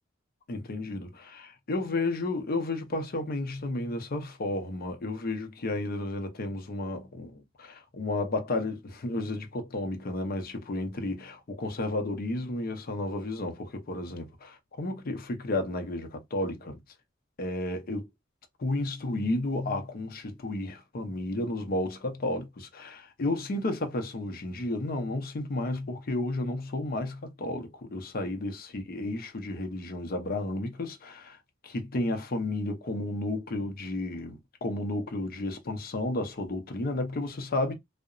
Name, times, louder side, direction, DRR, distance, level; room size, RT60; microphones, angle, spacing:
voice 1, 0.5-16.8 17.4-18.1 18.6-31.4 31.6-37.7, left 2 dB, 50° left, 0.5 m, -32 dB
2.8 x 2.0 x 2.4 m
head